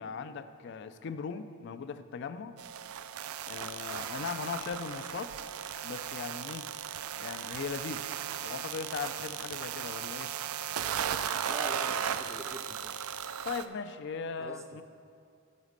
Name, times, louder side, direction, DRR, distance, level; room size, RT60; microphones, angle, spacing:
voice 1, 0.0-2.6 3.5-5.3 5.8-6.7 7.2-8.1 8.4-10.3 13.4-14.8, left 5 dB, 55° left, 12 dB, 0.3 m, -39 dB
sound 1, 2.6-13.7, right 9 dB, 85° right, 0.4 m, -36 dB
voice 2, 11.5-13.0 14.4-14.8, right 2 dB, 15° right, 6 dB, 0.4 m, -45 dB
10.5 x 4.1 x 6.6 m, 2.4 s
head